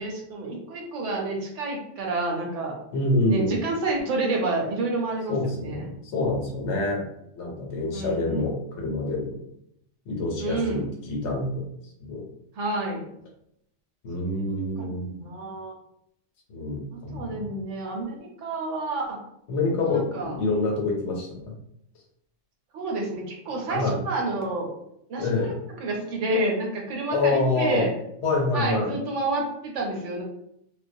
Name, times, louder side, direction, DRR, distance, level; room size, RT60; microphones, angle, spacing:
voice 1, 0.0-2.7 3.2-5.8 7.9-8.5 10.4-10.9 12.6-13.1 14.8-15.7 16.9-19.2 19.7-20.4 22.7-24.7 25.1-25.5 25.8-27.9 28.5-30.2, right 2 dB, 80° right, 0 dB, 1.0 m, -29 dB
voice 2, 2.9-3.6 5.3-7.0 7.4-9.4 10.1-11.6 12.0-12.2 14.0-15.1 16.5-17.5 19.5-21.5 23.7-24.0 25.2-25.6 27.1-27.8 28.2-28.9, left 2 dB, 75° left, -1 dB, 1.0 m, -26 dB
2.3 x 2.1 x 2.6 m, 0.75 s
omnidirectional pair, 1.2 m